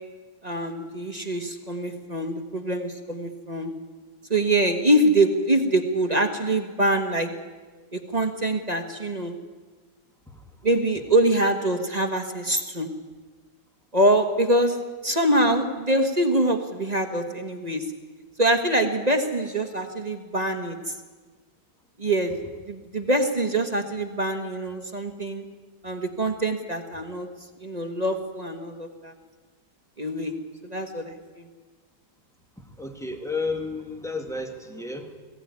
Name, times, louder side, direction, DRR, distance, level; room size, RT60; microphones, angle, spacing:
voice 1, 0.4-3.7 4.3-7.3 7.9-9.3 10.6-12.9 13.9-17.8 18.4-20.9 22.0-22.3 22.7-25.4 25.8-27.3 27.6-29.1 30.0-30.3 30.6-31.5, right 1 dB, 25° right, 4 dB, 1.5 m, -24 dB
voice 2, 32.6-35.2, left 3 dB, ahead, 4 dB, 2.0 m, -32 dB
21.0 x 16.5 x 9.6 m, 1.3 s
omnidirectional pair, 1.9 m